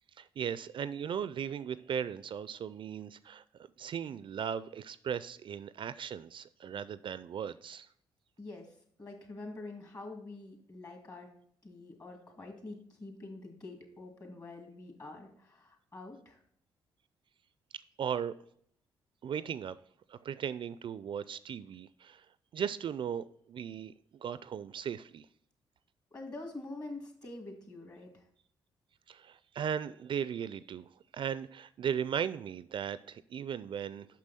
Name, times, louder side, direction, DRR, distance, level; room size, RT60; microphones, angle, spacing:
voice 1, 0.2-3.4 3.8-7.9 18.0-18.4 19.2-19.8 20.1-22.3 22.5-25.3 29.1-34.1, right 8 dB, 55° right, 0.3 m, -37 dB
voice 2, 9.0-11.3 11.6-16.4 26.1-28.2, left 2 dB, 35° left, 2.4 m, -46 dB
6.2 x 5.8 x 4.1 m
supercardioid pair, 55°, 10 cm